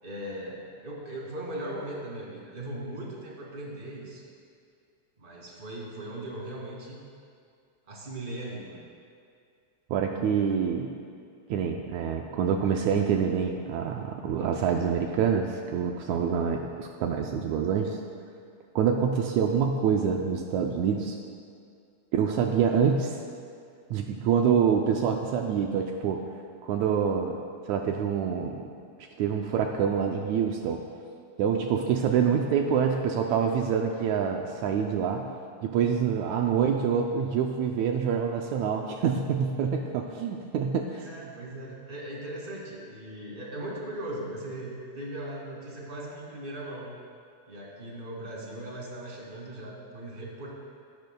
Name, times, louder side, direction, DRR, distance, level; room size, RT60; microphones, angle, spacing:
voice 1, 0.0-4.3 5.2-7.0 7.9-8.8 40.9-46.9 47.5-50.5, right 1 dB, 20° right, -3 dB, 2.3 m, -38 dB
voice 2, 9.9-10.9 11.5-18.0 18.8-21.2 22.1-23.2 23.9-26.2 26.6-27.4 27.7-28.7 29.0-30.8 31.4-35.3 35.6-41.0, right 7 dB, 80° right, 2 dB, 1.9 m, -26 dB
25.0 x 12.0 x 2.3 m, 2.3 s
omnidirectional pair, 3.4 m